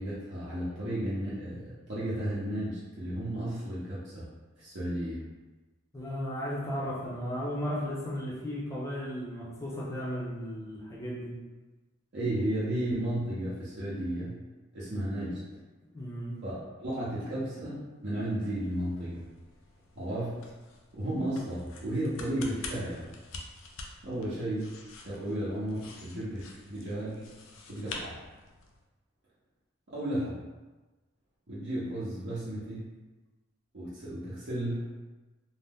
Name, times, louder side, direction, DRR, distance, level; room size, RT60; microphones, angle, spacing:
voice 1, 0.0-4.3 4.6-5.2 12.1-14.4 14.7-15.4 16.4-19.2 20.0-20.4 20.9-23.1 24.0-24.7 25.0-27.3 27.7-28.2 29.9-30.4 31.5-32.9 33.7-34.9, right 1 dB, 55° right, -10 dB, 0.7 m, -33 dB
voice 2, 5.9-11.4 15.9-16.4, equal, 15° left, -5 dB, 0.5 m, -35 dB
sound 1, 18.0-28.8, left 3 dB, 85° left, 0.4 m, -47 dB
2.7 x 2.0 x 3.4 m, 1.2 s
head